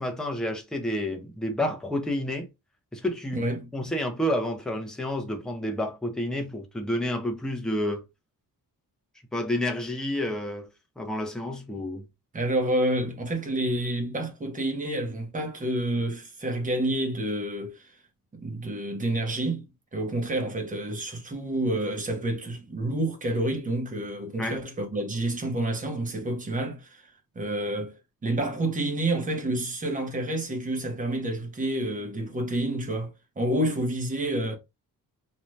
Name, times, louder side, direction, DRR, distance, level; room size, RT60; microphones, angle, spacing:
voice 1, 0.0-2.5 2.9-3.5 3.7-8.1 9.3-10.7 11.0-12.0 24.4-24.6, left 1 dB, ahead, 0.4 m, -29 dB
voice 2, 3.3-3.7 12.3-17.9 18.3-27.1 27.4-34.6, right 1 dB, 20° right, 0.8 m, -29 dB
2.6 x 2.2 x 3.1 m
wide cardioid pair, 175°, 36 cm